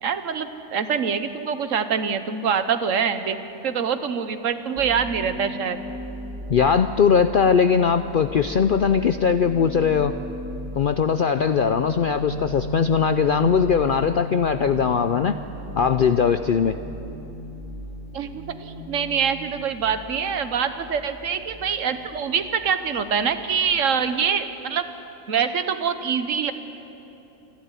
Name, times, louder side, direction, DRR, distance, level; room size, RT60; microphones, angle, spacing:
voice 1, 0.0-3.4 3.6-5.8 18.1-24.9 25.3-26.5, right 7 dB, 60° right, 10 dB, 1.3 m, -25 dB
sound 1, 4.8-24.1, equal, ahead, 3.2 m, -37 dB
voice 2, 6.5-10.1 10.8-15.4 15.8-16.7, left 6 dB, 80° left, 10 dB, 0.4 m, -20 dB
27.0 x 11.5 x 9.7 m, 3.0 s
omnidirectional pair, 1.6 m